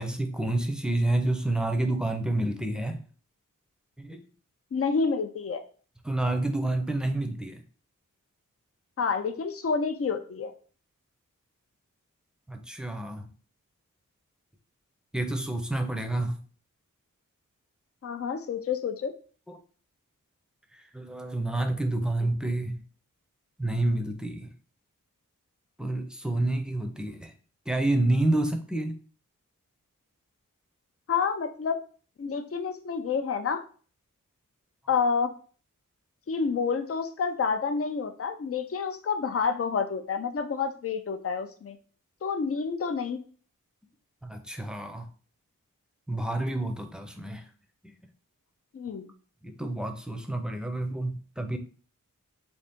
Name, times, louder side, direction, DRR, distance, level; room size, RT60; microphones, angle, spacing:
voice 1, 0.0-3.0 4.0-4.2 6.0-7.6 12.5-13.3 15.1-16.4 19.5-19.6 20.9-22.8 23.6-24.5 25.8-27.3 27.7-28.9 44.2-45.1 46.1-47.4 49.4-51.6, right 2 dB, ahead, 5 dB, 0.6 m, -29 dB
voice 2, 4.7-5.6 9.0-10.5 18.0-19.1 31.1-31.8 32.2-33.6 34.9-35.3 36.3-41.8 42.2-43.2 48.7-49.1, left 5 dB, 45° left, 7 dB, 0.5 m, -29 dB
3.9 x 2.4 x 3.6 m, 0.41 s
cardioid pair, 40°, 33 cm